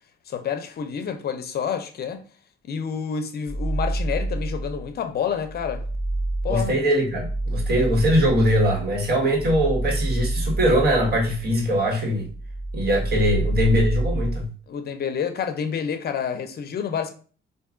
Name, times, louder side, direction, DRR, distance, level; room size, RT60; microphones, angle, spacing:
voice 1, 0.3-2.2 2.6-5.8 6.4-6.7 14.7-17.1, left 7 dB, 55° left, 0.5 m, -28 dB
sound 1, 3.5-4.9 5.3-11.8 12.2-14.4, right 2 dB, 15° right, 0.4 m, -28 dB
voice 2, 6.5-12.3 12.7-14.5, equal, 55° right, 1.6 m, -21 dB
4.6 x 2.6 x 2.5 m
cardioid pair, 90°, 20 cm